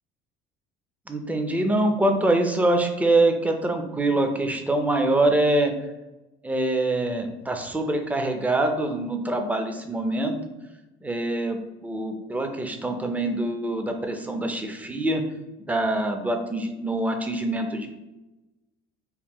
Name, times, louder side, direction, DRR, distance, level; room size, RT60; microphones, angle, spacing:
voice 1, 1.1-5.7 6.4-10.4 11.0-15.2 15.7-17.9, right 2 dB, 10° right, 5 dB, 0.4 m, -24 dB
3.0 x 2.1 x 3.6 m, 1.0 s
supercardioid pair, 100°, 16 cm